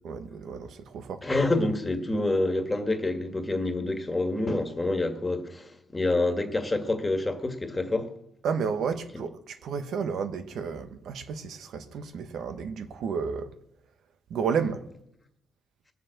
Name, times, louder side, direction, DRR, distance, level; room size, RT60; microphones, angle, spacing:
voice 1, 0.0-1.2 8.4-13.5 14.3-14.8, right 6 dB, 75° right, 1.2 m, -32 dB
voice 2, 1.2-8.1, left 2 dB, 15° left, 1.8 m, -27 dB
20.5 x 7.5 x 7.9 m
cardioid pair, 120°, 0 cm